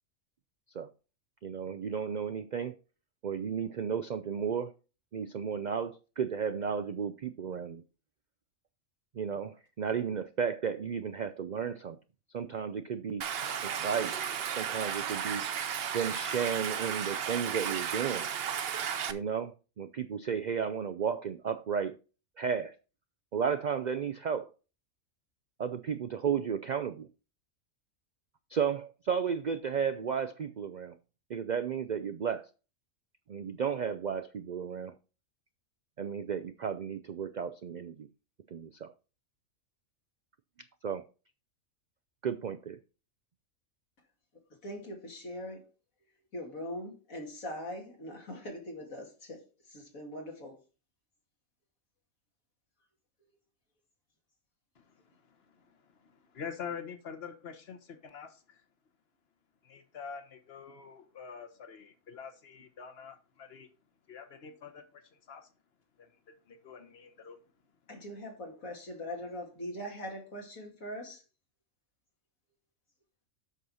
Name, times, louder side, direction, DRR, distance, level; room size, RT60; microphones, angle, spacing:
voice 1, 1.4-2.8 3.2-4.7 5.1-7.8 9.1-12.0 12.3-13.2 13.6-14.3 14.6-15.4 15.9-18.3 19.1-21.9 22.4-22.8 23.3-24.5 25.6-27.1 28.5-31.0 31.3-32.5 33.3-34.9 36.0-38.1 38.5-38.9 40.8-41.0 42.2-42.8, right 7 dB, 85° right, 0.4 m, -33 dB
Stream, 13.2-19.1, right 8 dB, 55° right, 0.8 m, -34 dB
voice 2, 44.6-45.7 46.3-50.6 67.9-71.2, left 1 dB, 75° left, 2.5 m, -41 dB
voice 3, 54.7-58.6 59.6-63.7 64.1-65.0 65.3-65.5 66.0-66.2 66.5-67.4, left 6 dB, 50° left, 1.4 m, -46 dB
8.1 x 6.2 x 4.1 m
omnidirectional pair, 1.4 m